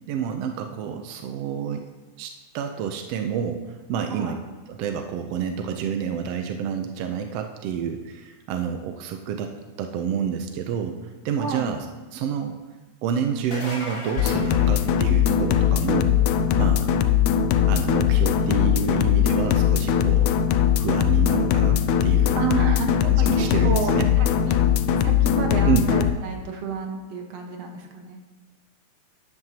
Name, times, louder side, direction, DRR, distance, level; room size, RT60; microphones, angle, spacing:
voice 1, 0.1-1.9 2.2-4.4 4.7-9.5 9.8-11.0 11.2-11.9 12.1-12.6 13.0-16.2 16.6-16.9 17.6-20.3 20.8-22.4 23.0-24.1 25.6-25.9, right 7 dB, 80° right, 5 dB, 1.4 m, -28 dB
voice 2, 11.4-11.7 22.4-23.2 23.6-24.6 24.9-28.2, right 5 dB, 60° right, 2 dB, 2.1 m, -30 dB
sound 1, 13.3-15.6 21.1-21.2 23.0-23.1, left 2 dB, 30° left, 1.1 m, -37 dB
sound 2, 14.2-26.1, left 9 dB, 80° left, 2.0 m, -20 dB
12.5 x 10.5 x 2.9 m, 1.2 s
omnidirectional pair, 3.5 m